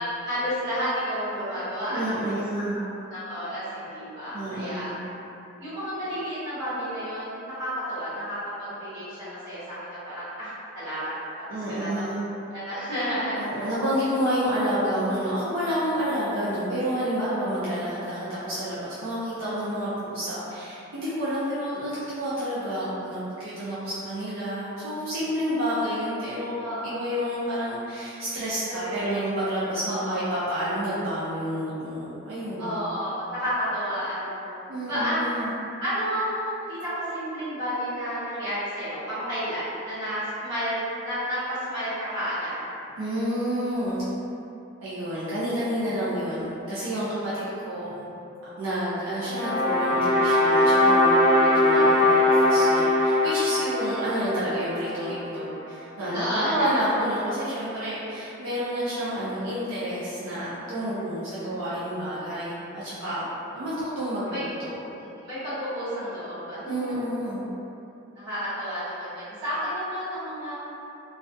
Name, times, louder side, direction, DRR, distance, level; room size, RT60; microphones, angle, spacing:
voice 1, 0.0-2.4 3.1-4.9 5.6-11.1 11.7-12.0 12.5-13.3 13.6-13.7 26.6-26.9 28.7-29.2 29.9-30.3 32.6-34.5 34.9-35.2 35.8-42.6 56.1-56.8 64.3-64.4 64.9-66.9 68.1-70.6, equal, 55° right, -13 dB, 1.2 m, -31 dB
voice 2, 1.9-2.8 4.3-5.0 11.5-12.2 13.3-32.8 34.7-35.5 43.0-44.0 44.8-48.0 48.6-63.3 63.5-64.7 66.6-67.4, equal, 90° right, -10 dB, 0.5 m, -29 dB
sound 1, 49.2-55.5, left 1 dB, 20° right, 1.0 m, -21 dB
2.3 x 2.1 x 2.5 m, 2.8 s
head